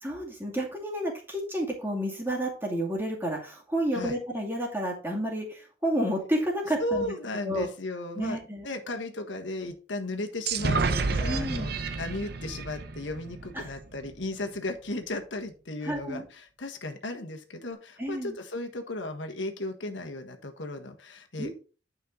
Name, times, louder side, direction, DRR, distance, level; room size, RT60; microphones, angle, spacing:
voice 1, 0.0-7.1 7.4-7.7 8.2-8.7 11.2-11.7 13.5-13.7 15.8-16.2 18.0-18.3 21.4-21.5, right 1 dB, 10° right, -1 dB, 2.4 m, -30 dB
voice 2, 6.8-11.7 12.0-21.5, left 2 dB, 80° left, 4 dB, 1.5 m, -35 dB
sound 1, 10.5-14.1, right 4 dB, 55° right, 0.8 m, -30 dB
9.8 x 5.7 x 3.9 m, 0.35 s
head